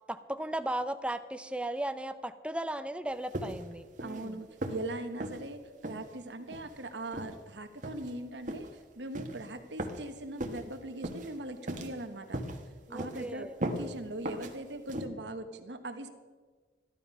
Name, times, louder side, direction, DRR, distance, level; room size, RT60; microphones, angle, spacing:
voice 1, 0.1-4.4 12.9-13.6, right 1 dB, 5° right, 11 dB, 0.6 m, -36 dB
sound 1, 3.3-3.7 4.0-4.3 4.6-4.9 5.2-5.4 5.8-6.0 6.5-6.7 7.1-7.3 7.8-8.1 8.5-8.7 9.1-9.4 9.8-10.1 10.4-10.6 11.0-11.3 11.7-12.0 12.3-12.6 13.0-13.3 13.6-13.9 14.2-14.5 14.9-15.1, right 1 dB, 45° right, 1.3 m, -37 dB
voice 2, 4.0-8.7 9.0-12.4 12.9-16.1, right 1 dB, 85° right, 7 dB, 1.4 m, -40 dB
15.0 x 11.5 x 5.5 m, 1.4 s
head